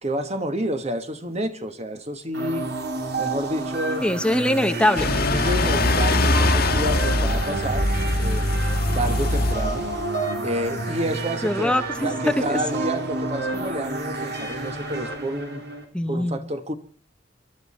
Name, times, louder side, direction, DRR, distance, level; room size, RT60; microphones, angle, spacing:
voice 1, 0.0-2.7 3.2-4.1 5.1-7.9 8.2-8.5 8.9-9.9 10.4-11.8 12.0-15.6 16.1-16.7, right 1 dB, 35° right, 1.5 m, -29 dB
sound 1, 2.3-15.8, right 3 dB, 65° right, 3.2 m, -30 dB
voice 2, 4.0-5.1 11.4-12.6 15.9-16.4, left 1 dB, 5° left, 0.8 m, -22 dB
sound 2, 5.0-10.0, left 2 dB, 60° left, 1.4 m, -22 dB
22.0 x 12.0 x 4.3 m
head